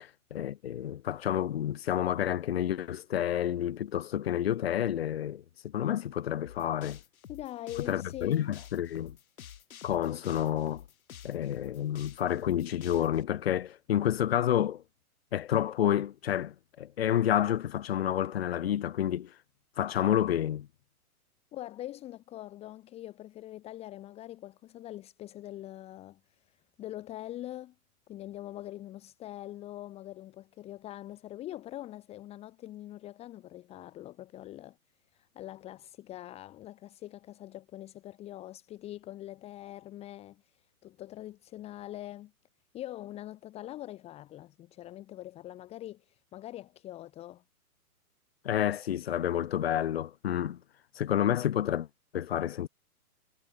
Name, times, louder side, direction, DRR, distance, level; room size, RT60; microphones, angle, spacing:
voice 1, 0.3-7.0 7.8-9.2 9.8-10.8 11.2-14.8 15.3-19.3 19.8-20.7 48.4-50.6 51.0-51.9 52.1-52.7, left 10 dB, 45° left, 0.6 m, -29 dB
sound 1, 6.4-13.2, left 9 dB, 65° left, 2.4 m, -49 dB
voice 2, 7.3-8.5 21.5-27.7 28.1-34.8 35.1-42.3 42.7-47.4, left 14 dB, 15° left, 1.8 m, -43 dB
hypercardioid pair, 165°, 45 cm